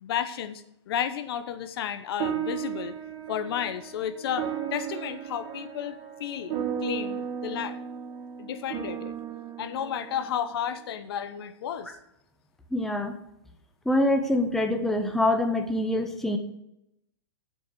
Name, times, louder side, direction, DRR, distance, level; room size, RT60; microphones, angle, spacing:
voice 1, 0.0-2.9 3.3-7.8 8.4-9.1 9.6-11.9, left 9 dB, 55° left, 11 dB, 0.9 m, -32 dB
sound 1, 2.2-10.9, right 8 dB, 45° right, 2.0 m, -35 dB
voice 2, 12.7-13.1 13.9-16.4, left 1 dB, ahead, 5 dB, 0.8 m, -25 dB
7.4 x 6.9 x 7.6 m, 0.81 s
hypercardioid pair, 135°, 15 cm